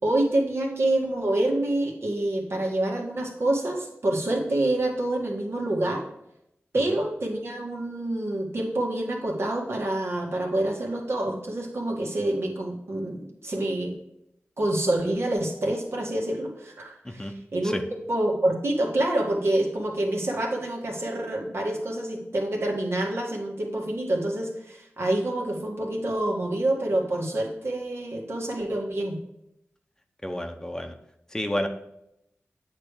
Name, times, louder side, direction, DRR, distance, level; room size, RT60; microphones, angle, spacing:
voice 1, 0.0-6.0 6.7-13.9 14.6-17.7 18.1-29.2, right 1 dB, 65° right, 0 dB, 1.9 m, -27 dB
voice 2, 30.2-30.9 31.3-31.7, left 1 dB, 15° left, 5 dB, 0.9 m, -30 dB
8.5 x 3.3 x 6.5 m, 0.80 s
wide cardioid pair, 60°, 5 cm